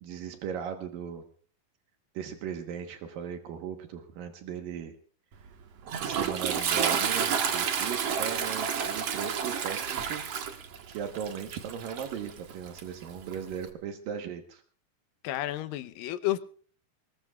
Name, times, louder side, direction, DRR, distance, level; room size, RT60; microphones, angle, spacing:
voice 1, 0.0-1.3 2.1-5.0 6.0-10.2 10.9-14.6, right 8 dB, 75° right, 5 dB, 2.9 m, -38 dB
Toilet flush, 5.4-13.7, right 7 dB, 55° right, 2.1 m, -31 dB
voice 2, 15.2-16.4, left 15 dB, 80° left, 12 dB, 2.5 m, -31 dB
23.5 x 20.5 x 2.4 m, 0.43 s
omnidirectional pair, 4.1 m